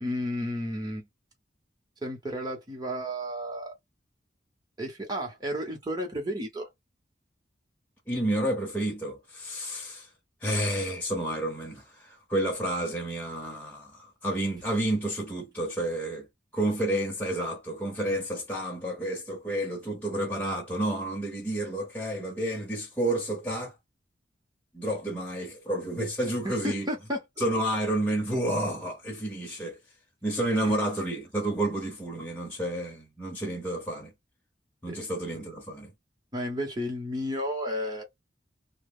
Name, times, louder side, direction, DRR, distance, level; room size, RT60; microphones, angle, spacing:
voice 1, 0.0-1.1 2.0-3.7 4.8-6.7 26.4-27.2 30.6-30.7 34.9-35.0 36.3-38.0, equal, 25° right, 1.0 m, -32 dB
voice 2, 8.1-10.1 10.4-16.3 16.5-23.8 24.7-26.9 27.4-29.8 30.2-34.1 34.8-35.9, right 1 dB, 10° left, 0.9 m, -30 dB
3.0 x 2.2 x 3.5 m
head